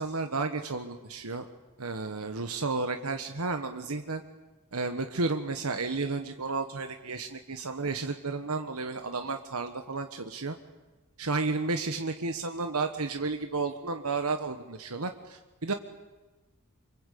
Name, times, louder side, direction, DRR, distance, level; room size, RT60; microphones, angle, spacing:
voice 1, 0.0-1.5 1.8-4.2 4.7-10.6 11.2-15.7, right 3 dB, 80° right, 7 dB, 1.4 m, -32 dB
26.0 x 24.5 x 8.5 m, 1.2 s
head